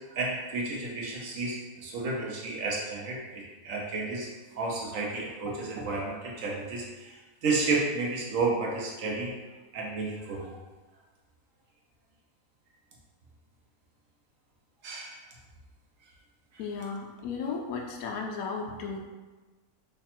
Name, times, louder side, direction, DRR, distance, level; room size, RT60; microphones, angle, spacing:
voice 1, 0.1-4.3 4.6-7.1 7.4-9.3 9.7-10.5 14.8-15.2, right 3 dB, 65° right, -2 dB, 1.0 m, -31 dB
voice 2, 16.6-19.0, left 5 dB, 70° left, 1 dB, 1.0 m, -35 dB
3.3 x 2.3 x 4.2 m, 1.2 s
omnidirectional pair, 1.6 m